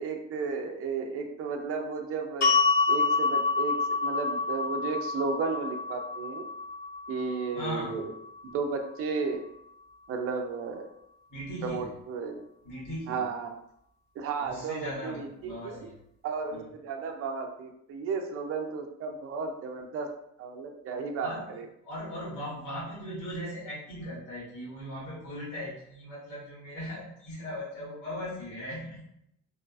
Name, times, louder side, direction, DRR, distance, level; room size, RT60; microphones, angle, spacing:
voice 1, 0.0-2.5 2.9-6.4 7.1-8.1 8.5-9.4 10.1-10.9 11.6-12.4 13.1-13.5 14.2-15.9 16.2-20.1 20.4-21.7, right 5 dB, 50° right, 3 dB, 0.4 m, -33 dB
sound 1, 2.4-8.6, left 4 dB, 60° left, 0.9 m, -28 dB
voice 2, 7.5-8.0 11.3-11.9 12.6-13.2 14.4-15.9 16.5-16.7 21.2-21.5 21.8-29.1, equal, 90° left, -8 dB, 1.2 m, -38 dB
2.4 x 2.2 x 2.4 m, 0.76 s
cardioid pair, 90°, 30 cm